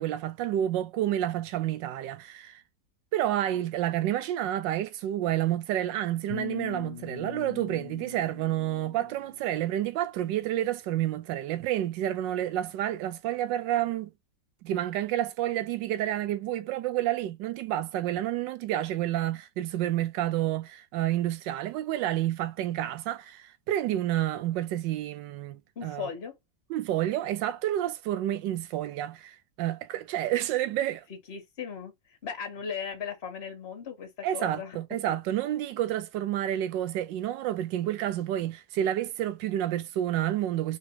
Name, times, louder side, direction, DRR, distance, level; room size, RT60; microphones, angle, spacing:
voice 1, 0.0-2.6 3.1-14.1 14.6-26.1 26.7-31.0 34.2-40.8, right 12 dB, 80° right, 1.2 m, -29 dB
sound 1, 6.3-9.4, left 12 dB, 75° left, 1.6 m, -41 dB
voice 2, 25.7-26.3 31.1-34.8 35.1-35.2, left 7 dB, 35° left, 1.7 m, -38 dB
3.9 x 2.8 x 4.6 m
omnidirectional pair, 2.0 m